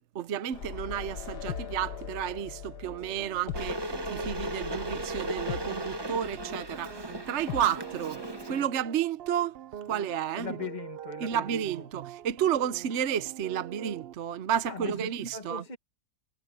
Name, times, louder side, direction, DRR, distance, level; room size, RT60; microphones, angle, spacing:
voice 1, 0.1-9.6 9.9-10.6 11.2-15.6, right 9 dB, 55° right, 1.0 m, -31 dB
sound 1, 0.5-8.6, left 7 dB, 85° left, 1.8 m, -41 dB
sound 2, 2.8-14.1, right 10 dB, 85° right, 0.5 m, -44 dB
Water / Boiling, 3.5-8.6, equal, 15° right, 1.1 m, -37 dB
voice 2, 10.3-11.9 14.6-15.8, left 5 dB, 25° left, 1.8 m, -40 dB
omnidirectional pair, 1.7 m